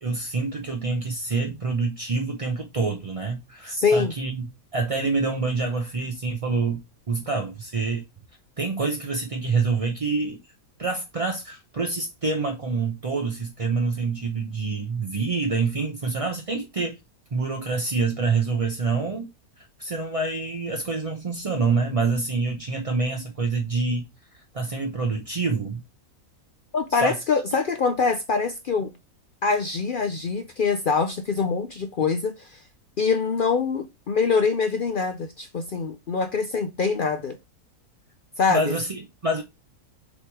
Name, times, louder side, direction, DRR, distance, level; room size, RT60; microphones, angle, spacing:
voice 1, 0.0-4.4 4.7-6.8 7.1-8.0 8.6-10.4 10.8-17.0 17.3-19.3 19.6-24.0 24.5-25.8 26.9-27.2 38.5-39.4, right 4 dB, 40° right, 0.5 m, -26 dB
voice 2, 3.7-4.1 26.7-28.9 29.4-32.6 33.0-37.4 38.4-38.6, left 5 dB, 65° left, 0.5 m, -24 dB
6.5 x 3.2 x 4.7 m
omnidirectional pair, 1.6 m